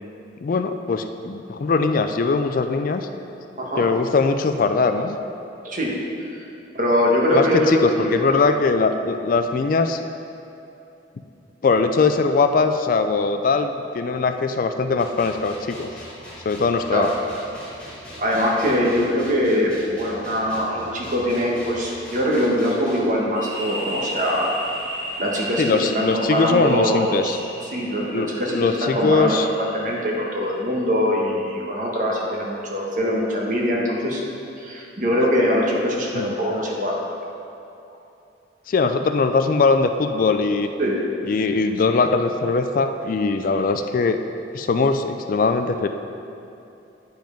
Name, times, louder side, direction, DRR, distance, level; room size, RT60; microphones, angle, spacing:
voice 1, 0.4-3.1 3.8-5.2 7.3-10.0 11.6-15.9 16.4-17.1 25.6-27.4 28.1-29.5 36.1-36.3 38.7-40.7 41.2-44.2 44.5-45.9, left 4 dB, 50° left, 8 dB, 0.3 m, -21 dB
voice 2, 5.6-6.0 6.3-6.4 6.7-8.2 16.9-17.1 18.2-24.5 25.2-34.2 34.6-37.0 40.8-41.0, equal, 45° right, -3 dB, 1.3 m, -22 dB
sound 1, 15.0-23.0, left 1 dB, 5° left, 1.4 m, -40 dB
sound 2, 23.3-30.8, equal, 30° left, 1.9 m, -35 dB
9.1 x 5.4 x 5.1 m, 2.7 s
head